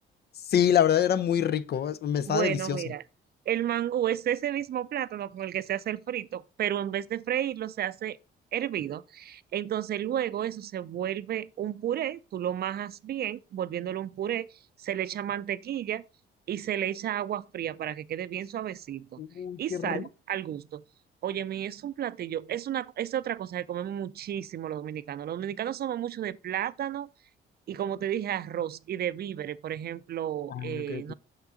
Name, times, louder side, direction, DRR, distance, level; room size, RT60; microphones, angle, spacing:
voice 1, 0.4-2.8 19.2-20.1 30.5-31.1, left 9 dB, 55° left, 0.6 m, -26 dB
voice 2, 2.3-3.0 3.5-8.2 8.5-16.0 16.5-19.2 19.6-20.8 21.2-27.1 27.7-31.1, right 11 dB, 50° right, 0.5 m, -32 dB
6.5 x 5.9 x 3.7 m
cardioid pair, 90°, 20 cm